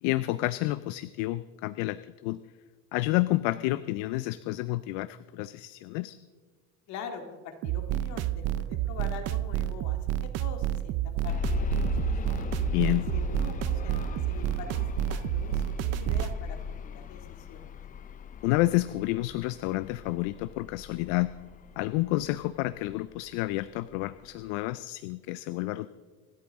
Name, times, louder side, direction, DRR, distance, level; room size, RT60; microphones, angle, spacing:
voice 1, 0.0-2.4 2.9-6.2 12.7-13.1 18.4-21.3 21.8-25.9, left 18 dB, 80° left, 15 dB, 0.6 m, -29 dB
voice 2, 6.9-11.7 12.0-12.1 13.1-16.6 16.8-17.8, left 6 dB, 55° left, 4 dB, 2.3 m, -44 dB
sound 1, 7.6-16.3, right 13 dB, 50° right, 0.6 m, -30 dB
sound 2, 11.3-23.2 23.9-24.0 24.5-24.6, left 7 dB, 25° left, 0.6 m, -37 dB
26.5 x 12.5 x 3.6 m, 1.4 s
cardioid pair, 155°, 33 cm